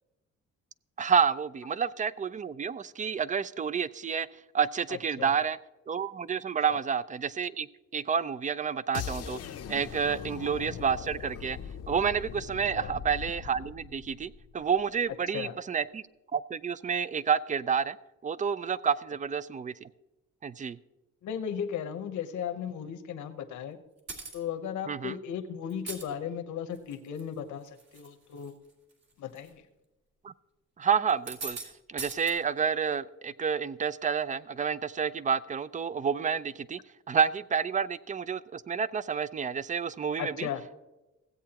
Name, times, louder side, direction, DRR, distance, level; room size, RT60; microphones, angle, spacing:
voice 1, 1.0-4.3 4.5-5.6 5.9-7.7 7.9-9.4 9.7-11.6 11.9-16.0 16.3-18.0 18.2-19.9 20.4-20.8 24.9-25.2 30.2-30.3 30.8-31.6 31.9-36.8 37.1-40.5, right 6 dB, 25° right, 17 dB, 0.4 m, -29 dB
voice 2, 4.9-5.3 6.7-6.8 12.8-12.9 15.3-15.6 21.2-23.8 24.3-28.5 29.2-29.6 40.2-40.6, left 8 dB, 75° left, 7 dB, 1.0 m, -36 dB
sound 1, 8.9-14.9, left 8 dB, 55° left, 0.7 m, -40 dB
sound 2, 24.1-24.4 25.7-26.0 26.8-27.2 27.7-28.1 28.4-28.5 29.4-29.5 31.1-31.7 32.0-32.3, right 4 dB, 60° right, 2.3 m, -39 dB
16.0 x 8.3 x 2.9 m, 1.0 s
cardioid pair, 90°, 30 cm